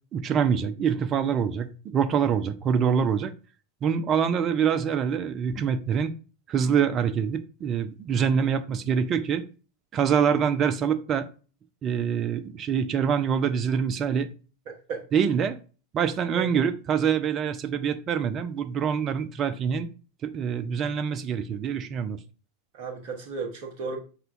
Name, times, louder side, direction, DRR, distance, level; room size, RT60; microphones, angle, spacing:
voice 1, 0.1-3.3 3.8-6.1 6.5-9.4 9.9-11.3 11.8-14.3 15.1-15.6 15.9-19.9 20.2-22.2, right 7 dB, 30° right, 0.4 m, -25 dB
voice 2, 14.7-15.0 16.3-16.5 22.7-24.0, right 5 dB, 45° right, 0.8 m, -34 dB
5.5 x 2.2 x 2.5 m
figure-of-eight pair, 90°, 0 cm